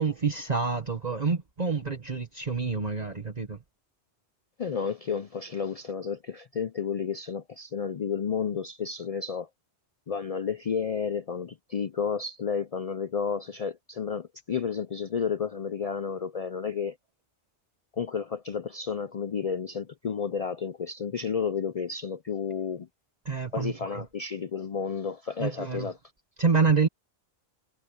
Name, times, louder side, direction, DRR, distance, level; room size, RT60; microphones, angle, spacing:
voice 1, 0.0-3.6 23.2-24.1 25.4-25.9 26.4-26.9, right 4 dB, 40° right, 1.4 m, -27 dB
voice 2, 4.6-9.5 10.1-17.0 18.0-22.9 23.5-25.9, left 6 dB, 50° left, 0.4 m, -31 dB
omnidirectional pair, 1.2 m